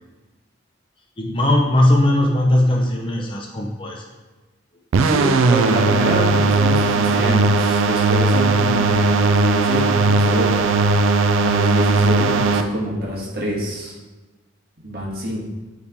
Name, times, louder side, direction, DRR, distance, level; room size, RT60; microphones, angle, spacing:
voice 1, 1.2-4.0, left 1 dB, 25° left, 0 dB, 0.7 m, -18 dB
sound 1, 4.9-12.6, right 3 dB, 70° right, 0.4 m, -17 dB
voice 2, 5.0-10.8 11.4-13.9 14.8-15.4, equal, 50° right, -4 dB, 1.5 m, -25 dB
8.4 x 3.4 x 3.5 m, 1.2 s
head